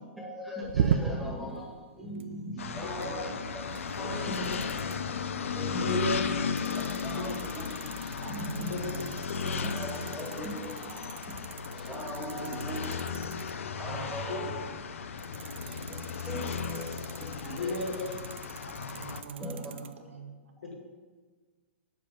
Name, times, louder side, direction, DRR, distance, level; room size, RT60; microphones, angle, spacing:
voice 1, 0.2-3.6 4.0-4.9 5.5-6.4 6.8-7.6 8.0-8.8 9.6-10.9 11.7-13.3 13.8-14.6 15.0-15.1 15.6-16.0 16.3-16.9 17.2-18.0 19.4-19.6, equal, ahead, -3 dB, 1.7 m, -39 dB
sound 1, 0.6-1.4 2.1-2.4 3.0-3.1 3.6-4.1 4.3-5.0 6.6-13.6 15.2-19.9, right 7 dB, 60° right, 0.5 m, -37 dB
sound 2, 2.6-19.2, left 6 dB, 90° left, 0.7 m, -35 dB
voice 2, 2.8-3.3 4.0-4.1 5.8-7.1 8.7-8.8 9.3-9.6 14.3-14.4 17.6-18.1 20.6-20.7, left 3 dB, 70° left, 1 dB, 1.9 m, -35 dB
voice 3, 8.2-9.6 10.1-10.2 13.8-14.5 18.7-20.7, right 5 dB, 90° right, 3 dB, 1.7 m, -45 dB
7.7 x 7.2 x 5.1 m, 1.4 s
hypercardioid pair, 155°, 7 cm